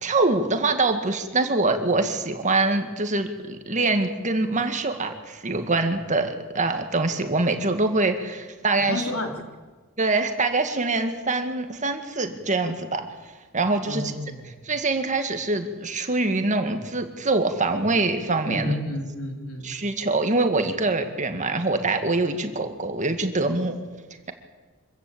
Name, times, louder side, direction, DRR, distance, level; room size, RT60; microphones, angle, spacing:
voice 1, 0.0-9.0 10.0-13.1 13.5-14.0 14.6-18.7 19.6-23.7, right 3 dB, 35° right, 7 dB, 1.9 m, -24 dB
voice 2, 8.8-9.4 13.9-14.5 18.5-19.7 22.4-22.5, left 1 dB, 75° left, 3 dB, 3.8 m, -31 dB
25.5 x 15.0 x 8.6 m, 1.4 s
head